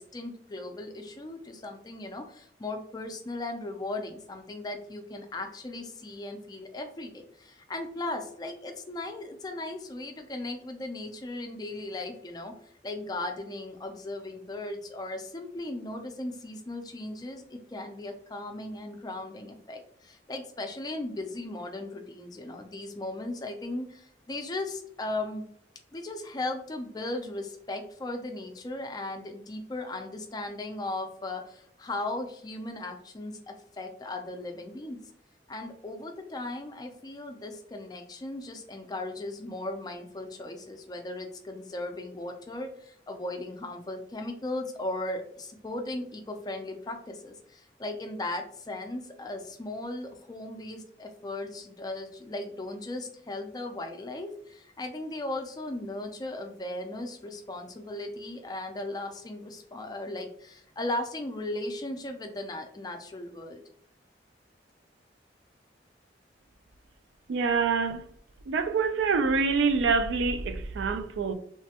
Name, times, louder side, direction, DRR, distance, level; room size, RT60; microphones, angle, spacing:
voice 1, 0.0-12.5 12.8-25.5 25.9-35.0 35.5-63.6, left 2 dB, 20° left, 0.3 m, -37 dB
voice 2, 67.3-68.0 68.5-71.3, right 4 dB, 80° right, 0.3 m, -26 dB
3.1 x 2.1 x 2.7 m
head